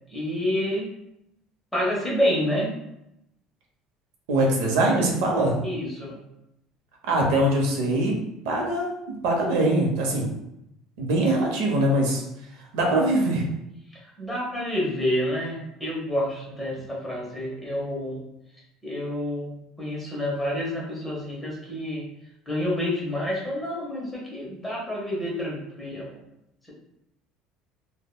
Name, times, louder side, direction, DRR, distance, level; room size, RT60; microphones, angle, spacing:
voice 1, 0.1-0.9 1.7-2.7 5.6-6.2 14.0-18.2 18.8-22.1 22.5-26.2, left 1 dB, 5° left, -5 dB, 0.8 m, -28 dB
voice 2, 4.3-5.6 7.1-8.2 8.4-10.3 11.0-12.2 12.7-13.4, right 1 dB, 85° right, -1 dB, 0.7 m, -22 dB
3.5 x 2.2 x 2.2 m, 0.84 s
cardioid pair, 160°, 0 cm